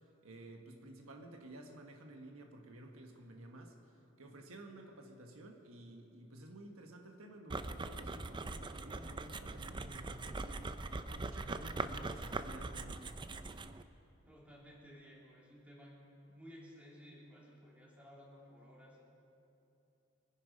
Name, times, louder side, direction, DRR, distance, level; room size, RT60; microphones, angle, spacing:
voice 1, 0.2-13.1, right 1 dB, 80° right, 3 dB, 1.4 m, -53 dB
sound 1, 7.5-13.8, right 3 dB, 20° right, 0.5 m, -42 dB
voice 2, 14.3-16.0 16.3-19.1, equal, 5° right, -4 dB, 3.0 m, -56 dB
24.0 x 10.5 x 5.2 m, 2.8 s
head